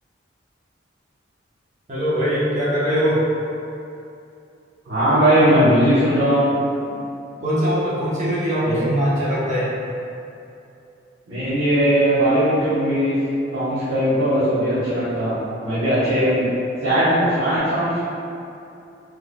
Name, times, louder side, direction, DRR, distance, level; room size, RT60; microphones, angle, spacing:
voice 1, 1.9-3.2 7.4-9.7, equal, 35° right, -9 dB, 0.9 m, -21 dB
voice 2, 4.8-6.5 8.6-8.8 11.3-13.1 13.5-15.3 15.6-16.4 16.8-18.0, equal, 70° right, -14 dB, 1.0 m, -19 dB
3.6 x 3.2 x 2.2 m, 2.6 s
head